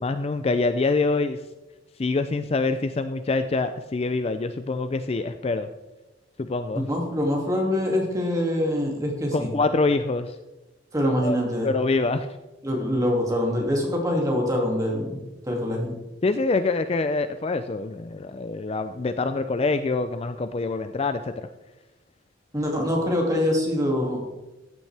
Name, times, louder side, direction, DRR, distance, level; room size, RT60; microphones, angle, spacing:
voice 1, 0.0-1.4 2.0-5.7 6.4-6.9 9.3-10.4 11.2-11.4 11.6-12.3 16.2-21.5, left 3 dB, 30° left, 10 dB, 0.4 m, -25 dB
voice 2, 6.9-9.5 10.9-11.7 12.6-16.0 22.5-24.2, left 1 dB, 20° right, -1 dB, 2.3 m, -24 dB
14.5 x 9.3 x 3.4 m, 1.0 s
head